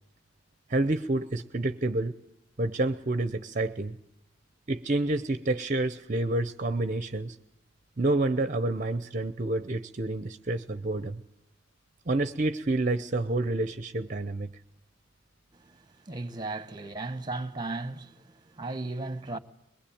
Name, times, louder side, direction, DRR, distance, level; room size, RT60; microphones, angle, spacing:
voice 1, 0.7-2.1 2.6-3.9 4.7-7.4 8.0-11.2 12.1-14.5, right 2 dB, 40° right, 0.8 m, -28 dB
voice 2, 15.5-19.4, right 2 dB, 20° right, 1.2 m, -36 dB
22.5 x 22.0 x 8.7 m
head